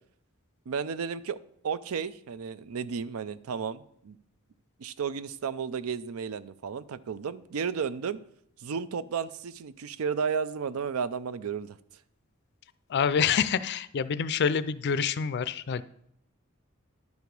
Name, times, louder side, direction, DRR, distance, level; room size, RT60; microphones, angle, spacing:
voice 1, 0.7-1.4 1.6-4.2 4.8-8.2 8.6-11.8, right 6 dB, 90° right, 16 dB, 0.5 m, -33 dB
voice 2, 12.9-15.8, left 7 dB, 50° left, 15 dB, 0.4 m, -27 dB
10.5 x 4.8 x 5.2 m, 0.69 s
head